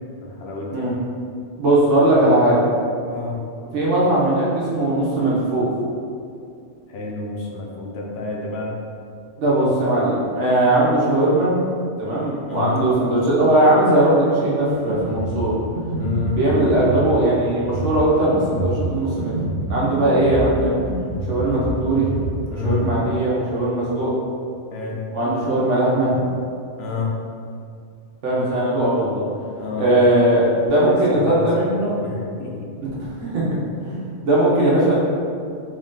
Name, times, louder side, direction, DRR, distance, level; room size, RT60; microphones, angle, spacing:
voice 1, 0.2-0.7 3.1-3.4 6.9-8.7 12.5-12.8 16.0-16.4 22.5-22.9 24.7-25.0 26.8-27.1 29.6-30.1 30.7-31.7 32.0-32.7, left 4 dB, 65° left, -2 dB, 0.8 m, -28 dB
voice 2, 1.6-2.6 3.7-5.7 9.4-11.5 12.0-15.6 16.3-19.3 19.7-20.8 21.3-22.1 22.5-24.1 25.1-26.2 28.2-29.2 29.8-31.9 33.0-33.5 33.8-34.9, right 1 dB, 80° right, -6 dB, 1.2 m, -19 dB
Drum kit, 14.7-23.0, right 1 dB, 50° right, 0.6 m, -27 dB
3.5 x 2.6 x 3.6 m, 2.4 s
omnidirectional pair, 1.2 m